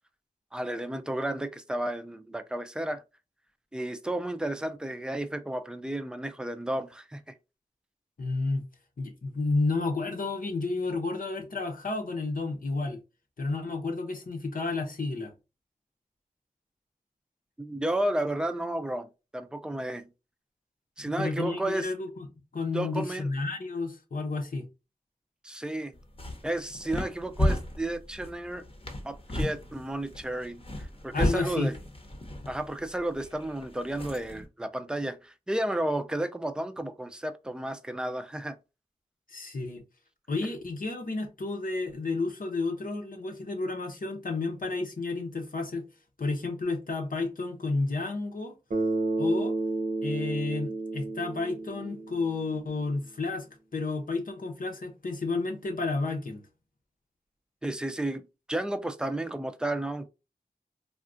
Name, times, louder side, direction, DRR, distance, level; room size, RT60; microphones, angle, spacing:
voice 1, 0.5-3.0 3.7-7.3 17.6-19.1 19.3-20.1 21.0-21.9 22.7-23.3 25.4-25.9 26.4-28.6 29.0-31.7 32.5-38.6 57.6-60.1, right 1 dB, 5° right, 0.4 m, -32 dB
voice 2, 8.2-8.6 9.0-13.0 13.4-15.3 21.0-22.3 22.5-24.7 31.1-31.7 39.3-39.8 40.3-45.8 46.2-48.5 49.2-49.5 50.0-53.5 53.7-56.4, left 3 dB, 65° left, 0.8 m, -31 dB
sound 1, 25.9-34.5, left 1 dB, 35° left, 0.8 m, -34 dB
Bass guitar, 48.7-52.7, right 3 dB, 60° right, 0.7 m, -31 dB
3.5 x 2.3 x 2.5 m
cardioid pair, 40°, 15 cm